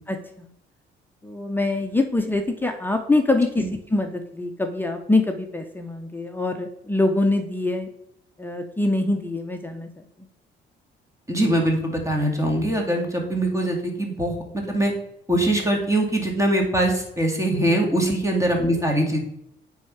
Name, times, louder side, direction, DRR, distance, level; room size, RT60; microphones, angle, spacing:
voice 1, 0.1-0.5 1.2-7.9 8.4-9.9, left 2 dB, 10° left, 5 dB, 0.7 m, -24 dB
voice 2, 11.3-14.9 15.3-19.2, right 1 dB, 15° right, 1 dB, 2.1 m, -22 dB
9.2 x 3.6 x 4.7 m, 0.78 s
cardioid pair, 90°, 20 cm